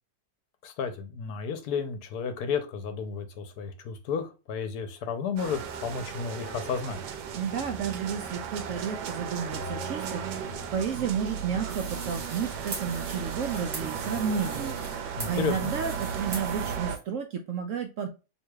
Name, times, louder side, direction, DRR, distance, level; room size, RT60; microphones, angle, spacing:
voice 1, 0.6-7.0 15.2-15.7, left 6 dB, 75° left, 8 dB, 1.2 m, -32 dB
sound 1, 5.4-17.0, right 7 dB, 85° right, 1.3 m, -35 dB
voice 2, 7.3-18.1, right 7 dB, 65° right, 4 dB, 0.8 m, -32 dB
sound 2, 11.7-16.8, right 3 dB, 45° right, 1.2 m, -40 dB
4.7 x 3.1 x 2.3 m, 0.29 s
omnidirectional pair, 1.8 m